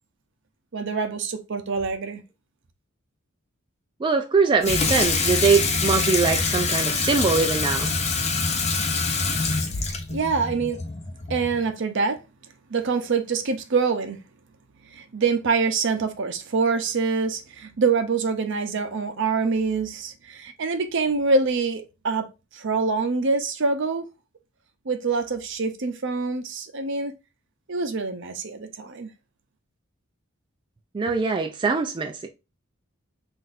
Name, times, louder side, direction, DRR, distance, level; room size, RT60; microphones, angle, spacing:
voice 1, 0.7-2.2 9.8-10.8 11.3-12.2 12.7-14.2 14.9-22.3 22.5-24.1 24.9-27.1 27.7-29.1, right 4 dB, 60° right, 0.6 m, -25 dB
voice 2, 4.0-7.9 30.9-32.3, right 4 dB, 25° right, 0.3 m, -22 dB
Water tap faucet / Sink (filling or washing), 4.6-11.7, left 4 dB, 30° left, 0.6 m, -25 dB
5.8 x 2.6 x 2.5 m
head